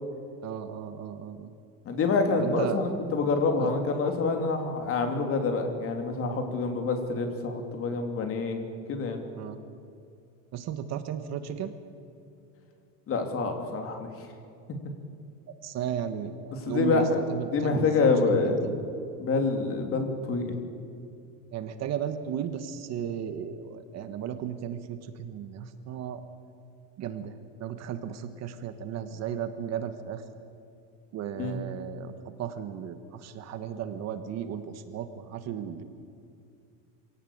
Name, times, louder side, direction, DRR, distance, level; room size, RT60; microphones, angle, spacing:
voice 1, 0.4-1.5 2.4-2.8 3.6-3.7 9.4-9.6 10.5-11.7 15.6-18.8 21.5-26.2 27.0-30.2 31.1-32.1 32.4-35.8, right 9 dB, 40° right, 10 dB, 1.3 m, -35 dB
voice 2, 1.8-8.6 8.9-9.2 13.1-14.1 16.5-17.2 17.5-18.7 19.2-20.5 31.4-31.6, left 4 dB, 35° left, 4 dB, 3.2 m, -27 dB
26.5 x 17.5 x 8.7 m, 2.5 s
cardioid pair, 160°, 40 cm